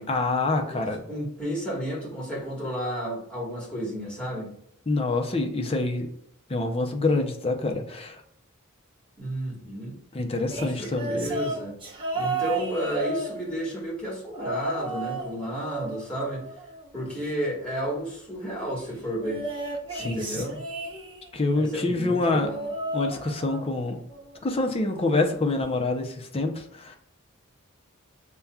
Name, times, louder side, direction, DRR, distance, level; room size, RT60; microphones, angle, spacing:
voice 1, 0.1-1.0 4.9-6.1 6.5-8.2 10.1-11.3 19.9-20.5 21.3-22.5 22.9-24.0 24.4-27.0, left 2 dB, 30° left, 3 dB, 0.6 m, -26 dB
voice 2, 0.6-4.5 9.2-10.0 10.6-11.7 12.1-16.4 16.9-19.4 20.0-20.7 21.5-22.7, equal, 5° left, -5 dB, 1.5 m, -32 dB
sound 1, 10.5-13.8 14.3-15.3 15.6-17.2 19.2-21.4 22.3-23.8 24.1-24.5 25.6-25.7, right 2 dB, 25° right, 0.8 m, -33 dB
6.8 x 2.3 x 2.3 m, 0.69 s
head